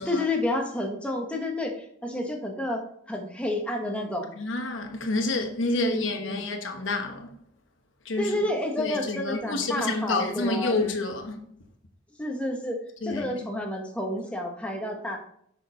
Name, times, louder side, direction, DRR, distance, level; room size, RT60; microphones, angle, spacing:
voice 1, 0.1-4.3 5.7-6.4 8.2-10.8 12.2-15.2, left 1 dB, 5° left, 1.1 m, -30 dB
voice 2, 4.4-7.3 8.0-8.3 8.8-11.4 13.0-13.3, left 2 dB, 70° left, 1.1 m, -28 dB
6.6 x 6.0 x 4.1 m
head